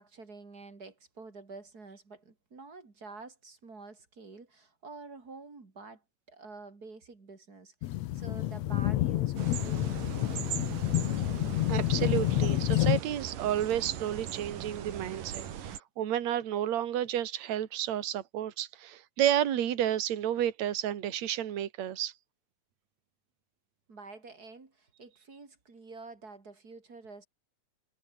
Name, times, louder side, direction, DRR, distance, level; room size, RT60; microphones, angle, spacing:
voice 1, 0.0-10.6 23.9-27.3, right 3 dB, 30° right, 3.3 m, -49 dB
sound 1, 7.8-13.0, left 15 dB, 75° left, 1.6 m, -28 dB
sound 2, 9.4-15.8, right 9 dB, 85° right, 3.8 m, -40 dB
voice 2, 11.7-22.1, right 11 dB, 60° right, 3.0 m, -31 dB
omnidirectional pair, 3.7 m